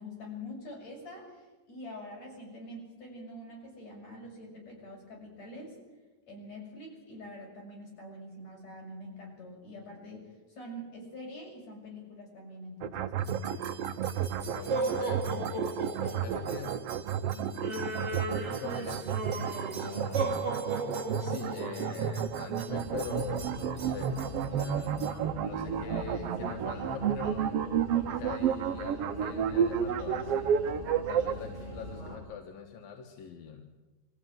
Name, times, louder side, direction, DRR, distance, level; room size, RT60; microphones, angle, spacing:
voice 1, 0.0-5.8 6.3-13.7, left 1 dB, 50° left, 0 dB, 7.8 m, -45 dB
sound 1, 12.8-31.3, right 8 dB, 70° right, 1.4 m, -31 dB
sound 2, 13.2-25.2, right 3 dB, 30° right, 1.4 m, -37 dB
voice 2, 14.4-15.4 16.0-16.9 17.2-19.0 19.3-20.4 21.2-25.0 25.4-30.5 31.1-33.7, left 6 dB, 85° left, 4 dB, 3.2 m, -43 dB
sound 3, 22.7-32.2, left 1 dB, 20° left, 6.9 m, -42 dB
24.5 x 14.5 x 9.3 m, 1.2 s
omnidirectional pair, 4.0 m